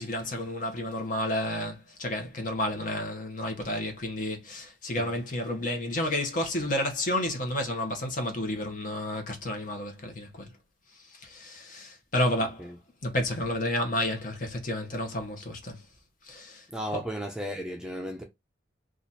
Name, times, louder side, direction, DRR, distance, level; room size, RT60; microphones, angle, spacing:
voice 1, 0.0-10.5 11.1-12.7 13.0-15.8 16.2-16.6 16.9-17.0, left 1 dB, 45° left, 1.0 m, -31 dB
voice 2, 16.7-18.2, equal, 5° right, 0.5 m, -34 dB
3.0 x 2.5 x 4.0 m
head